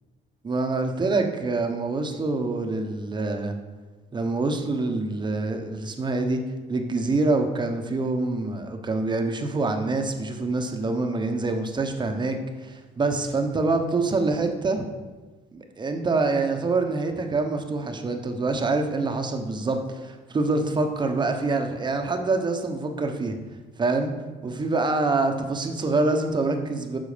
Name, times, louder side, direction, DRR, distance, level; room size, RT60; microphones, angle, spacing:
voice 1, 0.4-3.5 4.1-6.4 6.7-14.8 15.5-23.4 23.8-24.1 24.4-27.0, right 3 dB, 25° right, 5 dB, 1.1 m, -26 dB
9.3 x 6.3 x 5.1 m, 1.3 s
cardioid pair, 110°, 17 cm